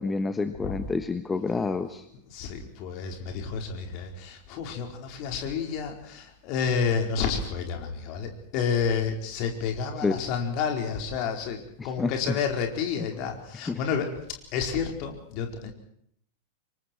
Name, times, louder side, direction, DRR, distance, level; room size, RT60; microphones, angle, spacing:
voice 1, 0.0-2.0 10.0-10.2 11.8-12.4 13.7-13.8, left 4 dB, 15° left, 9 dB, 1.3 m, -28 dB
voice 2, 2.3-14.1 14.5-15.7, left 6 dB, 45° left, 3 dB, 4.8 m, -30 dB
27.5 x 24.0 x 4.7 m, 0.69 s
figure-of-eight pair, 90°, 0 cm